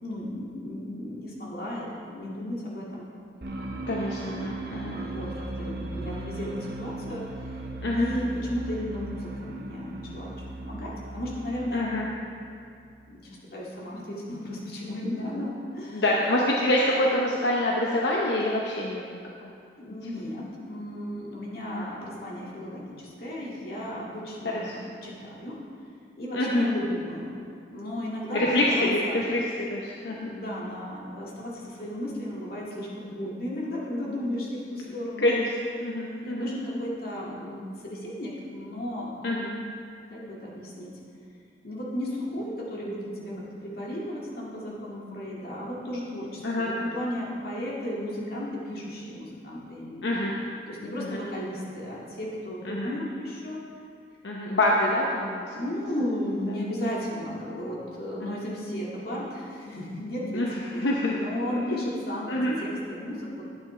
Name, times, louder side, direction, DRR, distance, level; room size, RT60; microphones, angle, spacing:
voice 1, 0.0-3.1 4.0-5.3 5.6-7.5 7.9-10.3 10.6-12.0 13.1-16.0 19.8-25.6 26.2-27.4 27.7-29.2 30.0-35.3 36.2-39.5 40.1-40.9 41.6-50.2 50.7-53.6 55.5-60.5 60.7-63.4, left 1 dB, 60° left, -5 dB, 2.1 m, -34 dB
sound 1, 3.4-13.0, right 2 dB, 60° right, 0.9 m, -37 dB
voice 2, 3.9-5.0 7.8-8.1 11.7-12.1 15.3-15.4 15.9-19.0 21.6-21.9 24.5-24.8 26.3-26.7 28.3-29.4 29.7-30.3 35.2-35.5 35.8-36.5 39.2-39.5 46.4-46.7 50.0-50.3 51.0-51.2 52.6-52.9 54.2-55.5 58.2-58.4 60.4-61.6 62.3-62.6, left 1 dB, 85° left, -3 dB, 0.9 m, -26 dB
12.0 x 8.9 x 3.3 m, 2.4 s
head